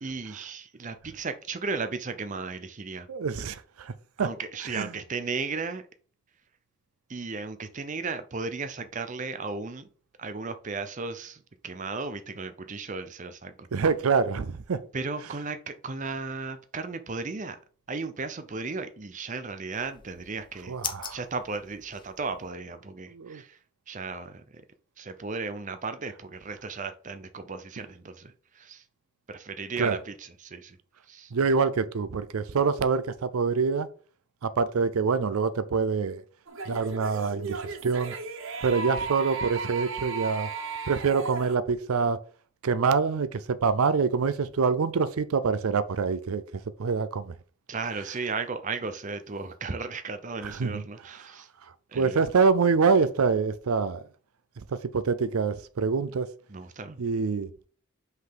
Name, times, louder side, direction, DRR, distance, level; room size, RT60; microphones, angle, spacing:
voice 1, 0.0-3.1 4.2-5.8 7.1-9.8 10.2-13.5 14.9-17.6 17.9-20.7 21.1-23.6 23.9-24.4 25.0-28.8 29.3-30.8 31.1-31.3 47.7-51.5 51.9-52.2 56.5-57.0, right 4 dB, 35° right, 0.6 m, -35 dB
voice 2, 3.1-3.9 4.2-4.3 4.7-4.9 13.7-14.8 20.7-21.2 23.1-23.4 29.8-30.0 31.3-33.9 34.4-36.2 36.7-38.1 38.6-40.5 40.9-42.2 42.6-46.4 46.8-47.3 50.4-50.8 51.9-54.0 54.7-56.3 57.0-57.7, right 5 dB, 85° right, 0.5 m, -25 dB
sound 1, 19.7-22.5, left 8 dB, 20° left, 0.4 m, -41 dB
sound 2, 36.5-41.6, right 4 dB, 65° right, 0.9 m, -35 dB
5.4 x 4.0 x 5.1 m
head